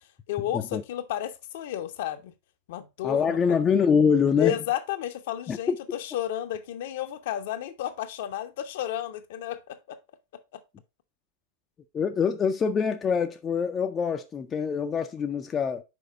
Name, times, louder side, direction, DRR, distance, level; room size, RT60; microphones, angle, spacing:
voice 1, 0.3-2.3 2.7-3.6 4.4-10.0 10.5-10.6, left 11 dB, 55° left, 0.8 m, -32 dB
voice 2, 3.0-4.5 5.5-5.8 11.9-15.8, left 6 dB, 25° left, 0.5 m, -24 dB
6.1 x 4.9 x 3.7 m
figure-of-eight pair, 90°, 0 cm